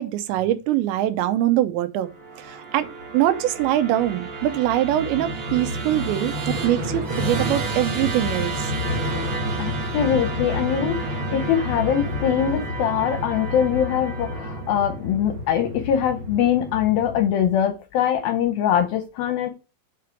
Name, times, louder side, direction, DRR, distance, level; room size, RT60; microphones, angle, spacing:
voice 1, 0.0-2.1 2.4-2.9 3.1-8.7, right 13 dB, 85° right, 3.0 m, -23 dB
Musical instrument, 2.1-17.4, right 1 dB, 65° right, 1.2 m, -29 dB
voice 2, 9.6-19.5, left 9 dB, 75° left, 2.2 m, -23 dB
7.9 x 5.1 x 4.5 m
omnidirectional pair, 5.1 m